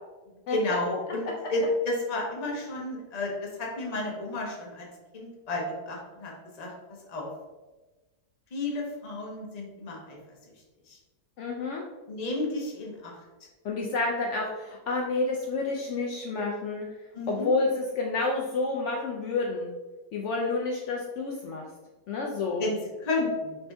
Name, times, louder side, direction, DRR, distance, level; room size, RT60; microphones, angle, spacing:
voice 1, 0.5-4.9 5.1-6.7 7.1-7.3 8.5-10.2 10.9-11.0 12.1-13.1 17.1-17.5 22.6-23.7, left 2 dB, 45° left, -1 dB, 0.5 m, -32 dB
voice 2, 11.4-11.8 13.6-16.9 17.3-19.7 20.1-21.6 22.1-22.6, left 3 dB, 90° left, -1 dB, 0.6 m, -29 dB
4.2 x 2.7 x 3.4 m, 1.2 s
omnidirectional pair, 1.8 m